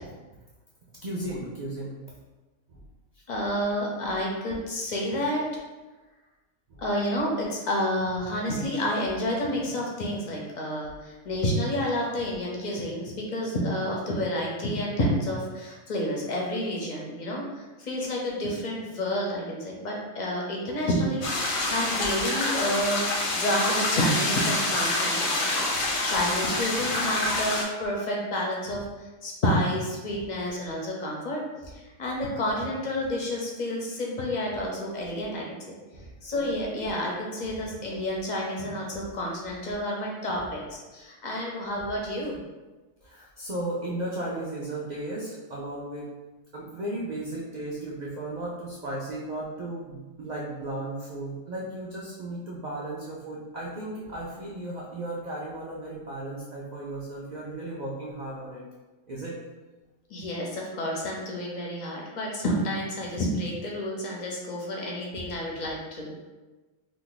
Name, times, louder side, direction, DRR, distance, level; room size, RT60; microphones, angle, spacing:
voice 1, 1.0-2.0 2.7-2.8 6.7-6.8 8.6-8.8 10.8-10.9 25.4-25.9 30.1-30.2 35.9-36.1 37.6-37.7 38.9-39.0 43.0-46.1 46.5-58.6 59.1-59.4, right 1 dB, 75° right, -5 dB, 0.4 m, -35 dB
voice 2, 3.3-5.4 6.8-23.1 23.3-31.4 31.7-35.6 36.2-42.4 60.1-66.1, equal, 50° left, -2 dB, 0.5 m, -29 dB
sound 1, 21.2-27.6, left 2 dB, 90° left, 1.1 m, -27 dB
2.6 x 2.5 x 3.8 m, 1.2 s
omnidirectional pair, 1.4 m